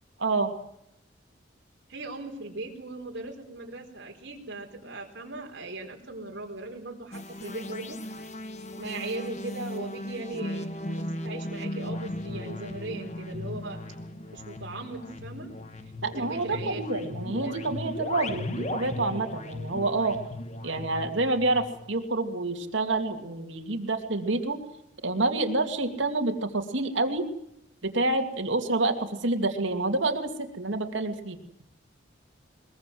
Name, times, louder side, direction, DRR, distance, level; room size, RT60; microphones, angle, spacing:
voice 1, 0.2-0.5 16.0-20.2 20.6-24.6 25.0-27.3 27.8-31.4, right 2 dB, 75° right, 5 dB, 2.5 m, -28 dB
voice 2, 1.9-8.0 8.8-13.8 14.3-15.5 16.2-17.5 18.3-18.4, right 2 dB, 60° right, -1 dB, 4.2 m, -39 dB
sound 1, 7.1-21.9, left 1 dB, 35° left, 1.4 m, -37 dB
22.5 x 21.5 x 7.8 m, 0.77 s
head